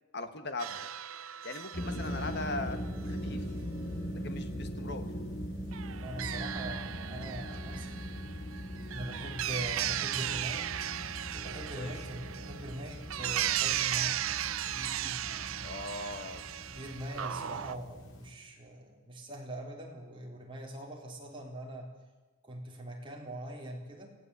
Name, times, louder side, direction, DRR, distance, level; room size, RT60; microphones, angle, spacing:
voice 1, 0.1-0.9 1.4-2.8 3.1-3.4 4.2-5.1 9.2-9.4 11.8-11.9 15.6-16.5, left 2 dB, 50° left, 7 dB, 1.9 m, -39 dB
sound 1, 0.6-2.6 5.7-17.8, right 11 dB, 75° right, 0.6 m, -36 dB
sound 2, 1.7-18.3, equal, 75° left, 4.9 m, -40 dB
voice 2, 6.0-8.0 8.9-10.7 11.3-14.2 14.6-15.7 16.7-21.9 22.4-24.1, right 1 dB, 25° right, -1 dB, 4.1 m, -42 dB
24.5 x 16.5 x 8.5 m, 1.2 s
head